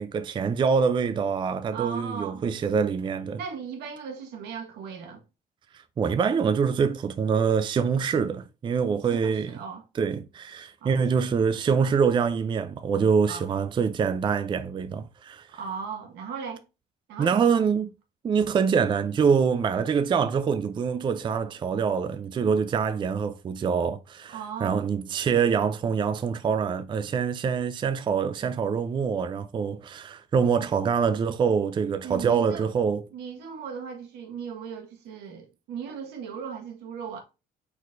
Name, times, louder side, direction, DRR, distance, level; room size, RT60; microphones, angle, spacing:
voice 1, 0.0-3.4 6.0-9.5 10.0-15.5 17.2-17.9 18.2-33.0, right 6 dB, 30° right, 0.4 m, -25 dB
voice 2, 1.7-2.4 3.4-5.2 9.2-9.8 10.8-10.9 13.3-13.5 15.5-16.6 17.1-17.6 24.3-24.8 32.0-32.7 33.1-37.2, right 6 dB, 80° right, 1.5 m, -37 dB
4.5 x 4.1 x 2.5 m
cardioid pair, 110°, 17 cm